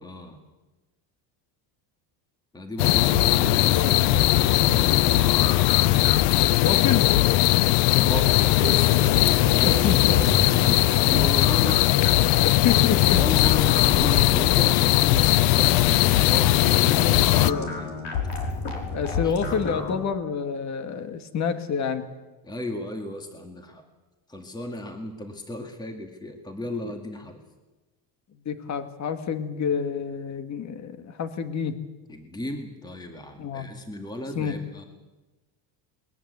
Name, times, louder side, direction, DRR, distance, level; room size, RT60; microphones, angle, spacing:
voice 1, 0.0-0.4 2.5-5.7 7.9-11.8 13.2-17.0 17.3-18.0 19.0-19.3 22.4-23.8 24.3-27.4 32.1-34.8, left 1 dB, 10° left, 5 dB, 2.1 m, -35 dB
sound 1, 2.8-17.5, left 18 dB, 75° left, 0.6 m, -19 dB
sound 2, 3.1-19.9, left 4 dB, 60° left, 5.3 m, -31 dB
voice 2, 3.5-4.1 6.6-7.1 9.6-10.2 12.4-13.2 16.9-17.8 18.9-22.1 28.5-31.8 33.4-33.7 34.4-34.5, left 6 dB, 35° left, 9 dB, 1.9 m, -28 dB
21.5 x 21.0 x 8.1 m, 1.1 s
cardioid pair, 150°, 45 cm